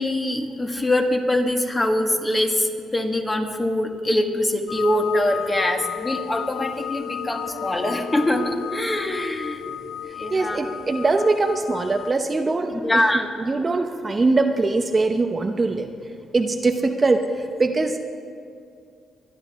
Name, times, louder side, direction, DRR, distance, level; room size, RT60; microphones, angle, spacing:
voice 1, 0.0-9.6 10.2-10.6 12.7-13.2, left 1 dB, 20° left, 3 dB, 1.5 m, -23 dB
sound 1, 4.7-12.1, left 10 dB, 65° left, 0.4 m, -33 dB
voice 2, 7.1-7.6 10.0-18.0, right 3 dB, 30° right, 5 dB, 0.7 m, -23 dB
23.5 x 10.0 x 3.6 m, 2.4 s
cardioid pair, 90°, 0 cm